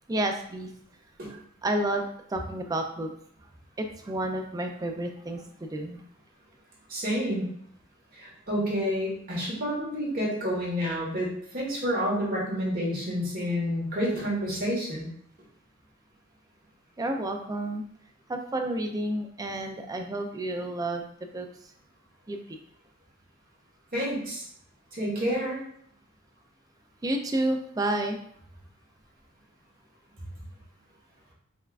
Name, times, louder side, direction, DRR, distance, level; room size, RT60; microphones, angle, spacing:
voice 1, 0.1-0.7 1.6-3.1 3.8-6.1 17.0-17.8 18.3-21.1 21.3-21.5 22.3-22.6 27.0-28.2, right 1 dB, 15° right, 4 dB, 0.3 m, -30 dB
voice 2, 6.9-7.5 8.1-15.1 23.9-24.4 24.9-25.6, equal, 45° right, -5 dB, 1.3 m, -29 dB
5.2 x 2.3 x 2.4 m, 0.66 s
head